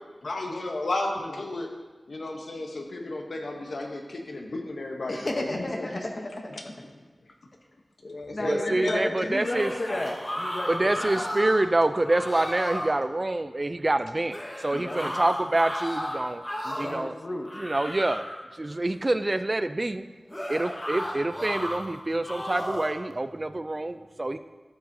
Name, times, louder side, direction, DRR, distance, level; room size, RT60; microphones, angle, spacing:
voice 1, 0.2-1.7 2.1-5.9 8.0-9.1, left 2 dB, 80° left, 2 dB, 0.9 m, -33 dB
voice 2, 5.1-6.5 8.3-11.3 14.7-15.2 16.6-17.5, left 1 dB, 50° left, 2 dB, 0.8 m, -33 dB
voice 3, 8.5-9.7 10.7-16.4 16.8-17.1 17.6-18.2 18.6-20.0 20.5-24.4, right 2 dB, 35° right, 11 dB, 0.3 m, -26 dB
sound 1, 9.3-11.7 12.0-12.9 14.3-17.0 17.4-18.4 20.3-21.8 22.2-23.0, equal, 20° left, 1.1 m, -33 dB
11.5 x 5.7 x 2.7 m, 1.3 s
wide cardioid pair, 65°, 0 cm